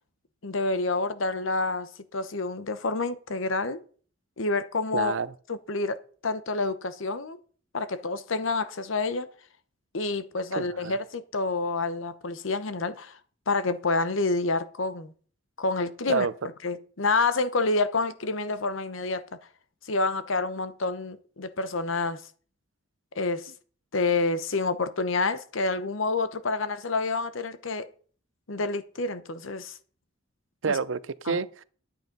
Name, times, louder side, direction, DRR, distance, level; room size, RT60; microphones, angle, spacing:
voice 1, 0.4-3.8 4.4-5.1 5.5-7.4 7.7-9.3 9.9-13.2 13.5-15.1 15.6-16.3 16.6-19.2 19.9-22.2 23.1-23.5 23.9-27.9 28.5-29.7 30.7-30.8 31.3-31.4, left 3 dB, 75° left, 0.9 m, -28 dB
voice 2, 4.9-5.3 10.6-11.0 16.1-16.3 30.6-31.6, right 5 dB, 70° right, 0.6 m, -28 dB
10.0 x 8.8 x 5.3 m
head